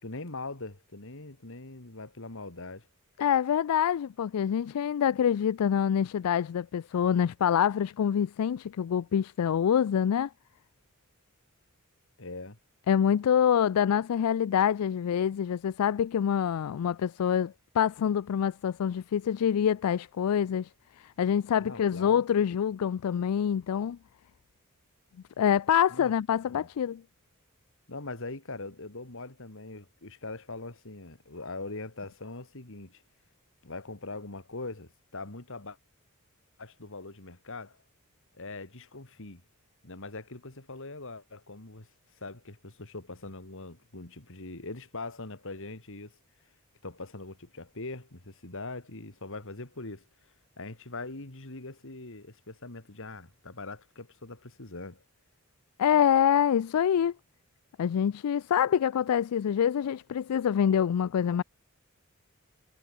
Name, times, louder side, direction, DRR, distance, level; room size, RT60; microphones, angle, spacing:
voice 1, 0.0-2.9 12.2-12.6 21.6-22.2 25.9-26.1 26.5-26.7 27.9-33.0 33.6-35.8 36.6-37.8 38.3-39.4 39.8-41.9 42.2-46.2 46.8-55.0, left 3 dB, 65° left, 2.8 m, -42 dB
voice 2, 3.2-10.3 12.9-20.7 21.2-24.0 25.4-27.0 55.8-57.1 57.8-61.4, left 8 dB, 85° left, 0.4 m, -26 dB
head